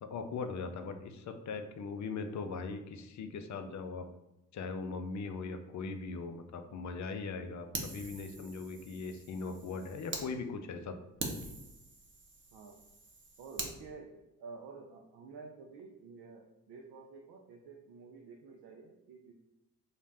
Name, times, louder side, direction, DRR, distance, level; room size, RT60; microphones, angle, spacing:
voice 1, 0.0-4.1 4.5-11.0, left 4 dB, 45° left, 7 dB, 0.4 m, -40 dB
Fire, 7.7-10.3 10.7-10.8 11.2-13.7, right 2 dB, 30° right, 0.7 m, -43 dB
voice 2, 13.4-19.3, right 4 dB, 65° right, 1 dB, 0.5 m, -50 dB
2.6 x 2.0 x 3.3 m, 0.96 s
hypercardioid pair, 45°, 41 cm